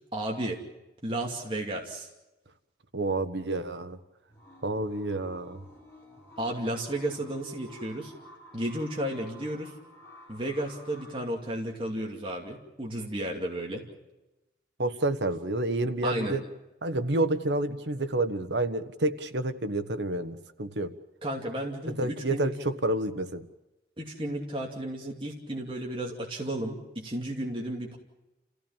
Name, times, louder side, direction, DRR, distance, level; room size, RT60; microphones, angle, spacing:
voice 1, 0.1-0.6 1.0-2.1 6.4-8.1 8.5-9.7 10.3-13.8 16.0-16.4 21.2-22.5 24.0-28.0, right 1 dB, 30° right, -1 dB, 2.6 m, -33 dB
voice 2, 2.9-4.0 4.6-5.6 14.8-16.4 16.8-20.9 21.9-23.5, right 2 dB, 85° right, 10 dB, 1.3 m, -29 dB
sound 1, 4.3-11.2, left 1 dB, 15° left, 6.0 m, -51 dB
29.0 x 15.5 x 7.4 m, 1.0 s
head